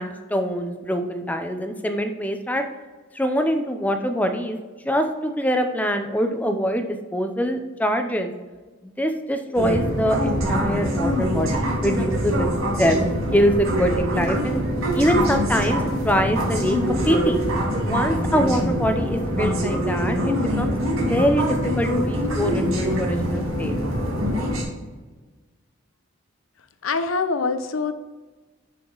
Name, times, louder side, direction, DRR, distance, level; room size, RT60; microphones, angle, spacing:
voice 1, 0.0-2.6 3.1-4.6 4.8-8.3 8.8-12.5 12.8-13.0 13.3-14.6 14.9-17.4 17.9-20.8 21.1-23.7, equal, 10° left, 6 dB, 0.6 m, -24 dB
sound 1, 9.6-24.6, equal, 90° right, 2.0 m, -24 dB
voice 2, 26.8-27.9, left 4 dB, 80° left, 10 dB, 0.7 m, -24 dB
6.9 x 5.8 x 3.9 m, 1.3 s
head